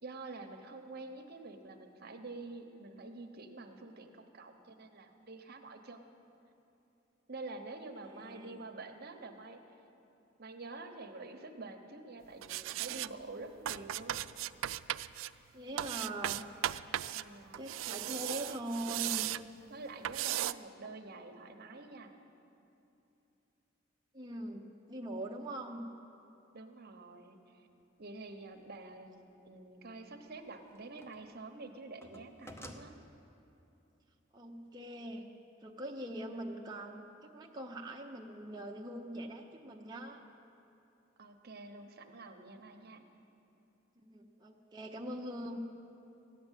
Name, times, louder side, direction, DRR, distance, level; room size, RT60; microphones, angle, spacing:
voice 1, 0.0-6.1 7.3-9.8 10.4-14.3 17.1-17.6 19.7-22.1 26.5-27.7 28.0-29.2 29.4-32.9 41.2-43.0, right 3 dB, 55° right, 6 dB, 1.0 m, -48 dB
voice 2, 8.2-8.6 15.5-16.4 17.6-19.3 24.1-25.9 34.3-35.2 35.6-37.0 37.3-40.2 44.0-45.6, right 1 dB, 20° right, 0 dB, 0.7 m, -42 dB
sound 1, 12.4-13.1 13.6-15.3 15.8-17.2 17.5-19.4 20.0-20.5, right 13 dB, 85° right, 0.3 m, -36 dB
sound 2, 28.3-28.4 30.1-31.4 31.6-32.9, equal, 15° left, 0.8 m, -52 dB
14.5 x 10.0 x 8.2 m, 2.8 s
head